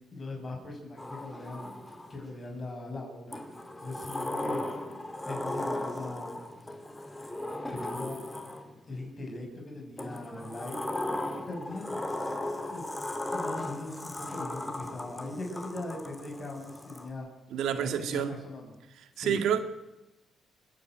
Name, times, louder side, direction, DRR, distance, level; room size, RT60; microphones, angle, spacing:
voice 1, 0.1-1.7 2.1-3.4 3.8-4.6 5.3-6.3 7.7-8.2 8.9-10.8 11.4-12.1 12.7-12.8 13.3-17.3 17.7-18.8 19.1-19.4, left 2 dB, 35° left, 6.2 m, -40 dB
Sliding door, 1.0-2.3 3.3-8.9 10.0-17.1, left 1 dB, 15° left, 2.8 m, -37 dB
voice 2, 17.5-18.4 19.2-19.6, right 8 dB, 80° right, 2.0 m, -28 dB
28.5 x 10.0 x 9.1 m
cardioid pair, 90°, 0 cm